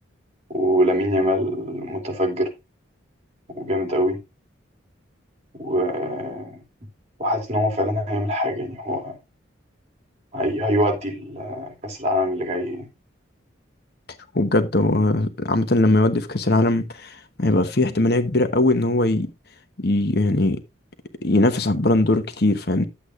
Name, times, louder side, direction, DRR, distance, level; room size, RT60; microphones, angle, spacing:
voice 1, 0.5-2.5 3.5-4.2 5.5-6.6 7.2-9.2 10.3-12.9, equal, 35° right, 3.0 m, -24 dB
voice 2, 14.3-19.3 19.8-20.6 21.2-22.8, left 2 dB, 50° left, 1.0 m, -20 dB
11.5 x 8.4 x 2.5 m
head